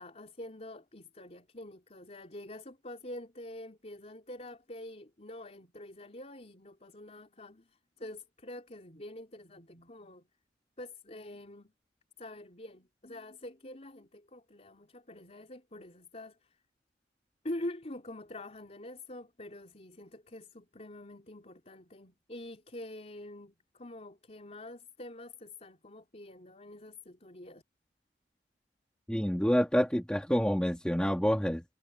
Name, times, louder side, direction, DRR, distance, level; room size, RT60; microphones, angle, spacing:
voice 1, 0.0-10.3 10.8-11.7 12.2-16.6 17.4-27.6, left 1 dB, 40° left, 3.9 m, -46 dB
voice 2, 29.1-31.6, equal, 5° left, 2.2 m, -27 dB
head